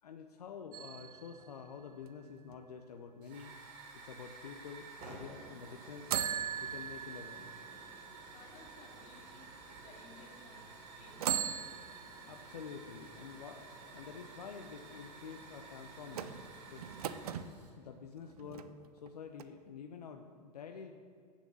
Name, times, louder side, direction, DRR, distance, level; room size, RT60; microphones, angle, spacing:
voice 1, 0.0-6.1 6.6-7.5 12.3-16.4 16.7-16.9 17.8-18.7 18.9-20.9, left 6 dB, 70° left, 5 dB, 0.7 m, -48 dB
sound 1, 0.7-2.5 6.1-9.2 9.8-9.9 11.1-12.9 16.1-17.5 18.2-19.1 19.4-19.5, right 9 dB, 65° right, 0.6 m, -40 dB
Hiss / Fire, 3.2-17.7, right 3 dB, 45° right, 2.8 m, -52 dB
voice 2, 8.3-9.5 9.8-10.6 10.9-11.3, left 3 dB, 35° left, -1 dB, 2.5 m, -58 dB
8.2 x 7.2 x 6.9 m, 2.2 s
figure-of-eight pair, 90°, 21 cm